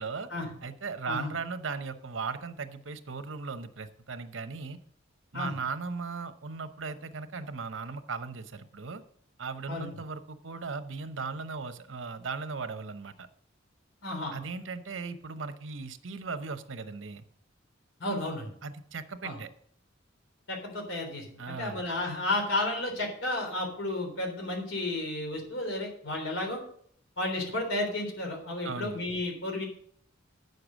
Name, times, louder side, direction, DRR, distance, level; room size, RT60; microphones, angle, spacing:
voice 1, 0.6-4.8 5.3-9.0 9.4-13.3 14.3-17.2 18.6-19.5 21.4-21.8 28.6-29.0, right 4 dB, 75° right, 10 dB, 0.8 m, -37 dB
voice 2, 14.0-14.4 18.0-18.5 19.2-19.4 20.5-26.6 27.2-29.7, left 2 dB, 85° left, 2 dB, 3.6 m, -32 dB
9.4 x 6.7 x 6.2 m, 0.62 s
head